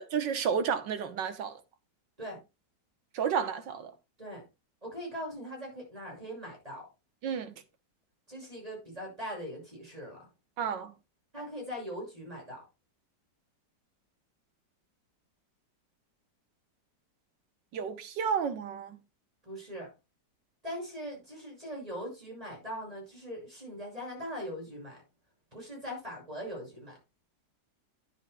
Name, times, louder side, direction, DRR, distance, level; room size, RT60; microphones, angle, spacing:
voice 1, 0.0-1.6 3.2-3.9 7.2-7.5 10.6-10.9 17.7-19.0, right 7 dB, 85° right, 1.7 m, -31 dB
voice 2, 4.8-6.9 8.3-10.3 11.3-12.6 19.4-19.9 20.6-25.0 25.5-27.0, equal, 20° right, 7.0 m, -41 dB
11.0 x 10.5 x 2.3 m
omnidirectional pair, 1.9 m